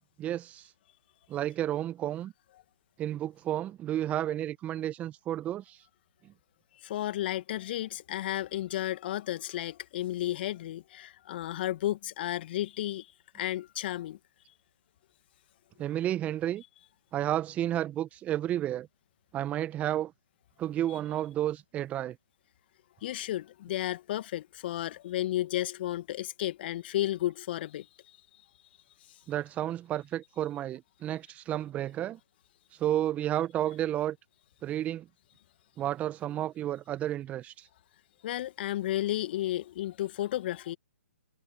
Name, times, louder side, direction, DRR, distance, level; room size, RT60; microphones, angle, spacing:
voice 1, 0.2-0.7 1.3-2.3 3.0-5.8 6.2-6.3 15.8-16.6 17.1-18.9 19.3-20.1 20.6-22.2 29.3-32.2 32.8-34.2 34.6-35.1 35.8-37.7, right 12 dB, 20° right, 1.4 m, -31 dB
voice 2, 6.8-14.2 23.0-28.2 38.2-40.8, left 13 dB, 45° left, 1.8 m, -33 dB
figure-of-eight pair, 130°, 8 cm